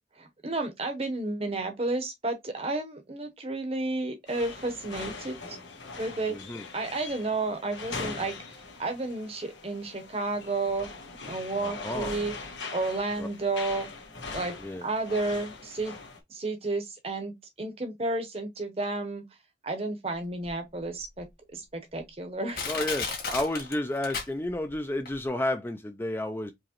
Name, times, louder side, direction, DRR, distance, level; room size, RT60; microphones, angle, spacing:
voice 1, 0.2-5.6 5.9-6.4 6.7-8.3 8.8-10.9 11.3-12.3 12.7-13.9 14.3-14.5 14.8-15.9 16.3-19.2 19.6-21.3 21.5-22.6, right 2 dB, 35° right, 0.8 m, -31 dB
sound 1, 4.3-16.2, left 4 dB, 85° left, 1.4 m, -41 dB
voice 2, 6.3-6.7 11.6-12.1 13.2-13.3 14.6-14.9 22.7-26.5, left 1 dB, 10° left, 0.4 m, -31 dB
Crushing, 20.5-20.6 21.2-21.3 22.0-22.1 22.5-24.7 25.1-25.2, left 4 dB, 50° left, 1.7 m, -33 dB
4.7 x 3.0 x 2.9 m
head